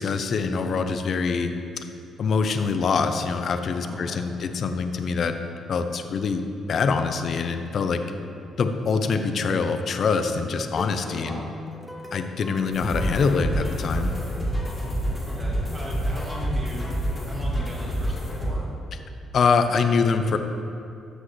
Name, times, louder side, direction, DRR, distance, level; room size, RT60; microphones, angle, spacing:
voice 1, 0.0-1.9 2.2-5.3 5.7-8.0 8.6-11.5 12.1-14.1 19.3-20.4, left 5 dB, 55° left, 8 dB, 0.6 m, -24 dB
voice 2, 3.8-4.3 11.1-11.5 14.1-14.5 15.2-16.9 17.3-18.7, equal, 30° right, -4 dB, 2.1 m, -38 dB
sound 1, 10.8-14.9, equal, ahead, 0.9 m, -42 dB
sound 2, 12.7-18.5, equal, 20° left, 2.1 m, -28 dB
13.5 x 6.2 x 3.2 m, 2.5 s
cardioid pair, 90°, 0 cm